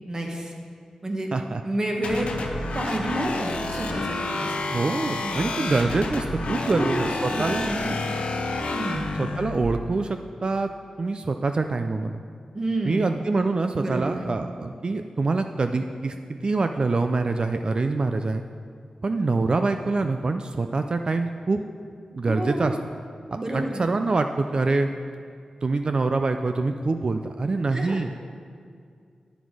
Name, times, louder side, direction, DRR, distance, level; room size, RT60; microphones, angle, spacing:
voice 1, 0.1-0.5 1.0-1.3 1.6-2.3 2.7-4.5 5.2-5.5 6.7-8.0 8.7-9.1 12.5-13.1 13.8-14.2 22.2-22.8 23.3-23.9 27.7-28.0, right 1 dB, 30° right, 1 dB, 1.2 m, -29 dB
sound 1, 2.0-9.6, left 2 dB, 90° left, 0.8 m, -29 dB
voice 2, 4.7-7.7 9.2-10.7 11.0-12.2 12.8-18.4 19.0-21.6 22.1-22.8 23.5-24.9 25.6-28.1, right 3 dB, 45° right, 7 dB, 0.3 m, -25 dB
9.1 x 6.1 x 4.8 m, 2.2 s
wide cardioid pair, 70°, 2 cm